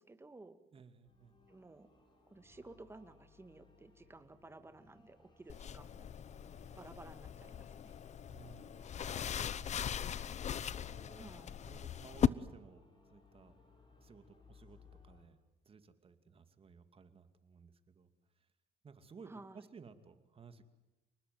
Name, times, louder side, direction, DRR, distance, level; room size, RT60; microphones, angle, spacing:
voice 1, 0.0-0.6 1.5-1.9 2.3-6.1 6.8-8.0 11.2-11.6 19.2-19.7, right 2 dB, 15° right, 10 dB, 2.1 m, -55 dB
voice 2, 0.7-1.4 8.3-9.8 10.7-11.3 11.6-13.6 14.0-15.4 15.6-18.5 18.8-20.6, right 5 dB, 35° right, 9 dB, 2.5 m, -58 dB
sound 1, 1.0-15.2, left 2 dB, 25° left, 7.6 m, -64 dB
sound 2, 5.5-12.3, left 9 dB, 45° left, 0.9 m, -39 dB
29.5 x 20.0 x 9.5 m, 1.0 s
cardioid pair, 110°, 17 cm